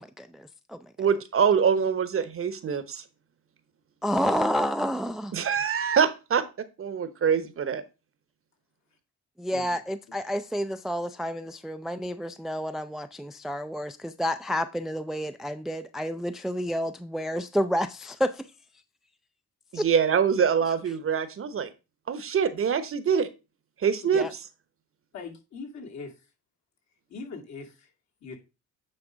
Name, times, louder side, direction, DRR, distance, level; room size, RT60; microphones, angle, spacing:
voice 1, 0.0-0.8 4.0-5.3 9.4-18.5 19.8-19.9 24.1-24.3, equal, ahead, 0.4 m, -29 dB
voice 2, 1.0-3.0 5.3-7.8 19.7-21.7 22.1-23.3 23.8-24.4, right 7 dB, 45° right, 0.9 m, -24 dB
voice 3, 25.1-26.1 27.1-27.9 28.2-28.4, left 4 dB, 65° left, 2.3 m, -40 dB
8.8 x 3.4 x 5.1 m
cardioid pair, 90°, 30 cm